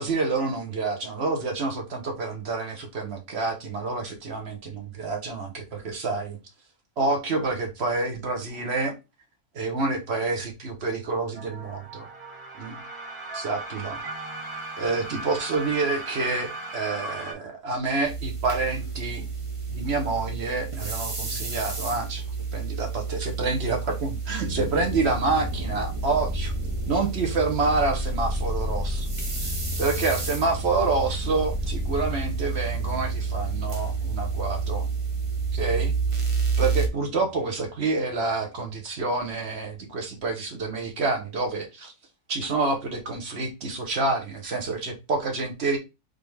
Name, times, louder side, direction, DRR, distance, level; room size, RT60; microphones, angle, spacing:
voice 1, 0.0-6.4 7.0-8.9 9.5-12.1 12.6-12.8 13.3-14.0 14.8-19.3 19.7-22.2 22.5-26.5 26.9-29.1 29.4-34.9 35.6-35.9 36.6-41.9 42.3-45.8, right 3 dB, 45° right, 1.2 m, -28 dB
sound 1, 11.3-17.3, right 3 dB, 75° right, 1.9 m, -37 dB
sound 2, 18.0-36.9, right 5 dB, 30° right, 0.6 m, -30 dB
sound 3, 24.4-37.5 37.8-38.4, left 2 dB, 10° right, 1.4 m, -34 dB
3.9 x 3.5 x 3.3 m
omnidirectional pair, 1.6 m